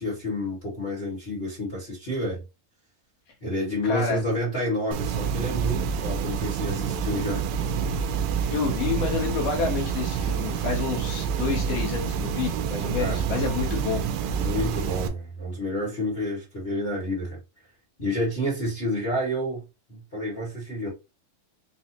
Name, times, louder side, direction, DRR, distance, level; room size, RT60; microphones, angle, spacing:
voice 1, 0.0-2.4 3.4-7.4 13.0-13.2 14.4-17.4 18.0-20.9, left 1 dB, 25° left, 1.3 m, -29 dB
voice 2, 3.8-4.2 8.5-14.0, left 5 dB, 70° left, 2.6 m, -29 dB
sound 1, 4.9-15.1, right 7 dB, 80° right, 2.1 m, -28 dB
5.9 x 2.4 x 2.9 m
omnidirectional pair, 4.2 m